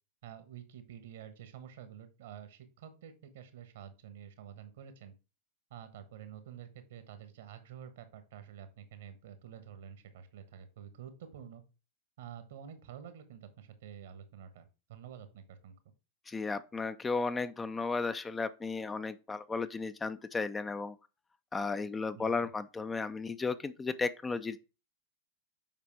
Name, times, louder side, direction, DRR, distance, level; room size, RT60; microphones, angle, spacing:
voice 1, 0.2-5.1 5.7-11.6 12.2-15.7 22.1-22.5, right 9 dB, 60° right, 1.2 m, -49 dB
voice 2, 16.3-21.0 21.5-24.6, left 4 dB, 15° left, 0.4 m, -34 dB
7.4 x 5.0 x 3.4 m
figure-of-eight pair, 90°, 0 cm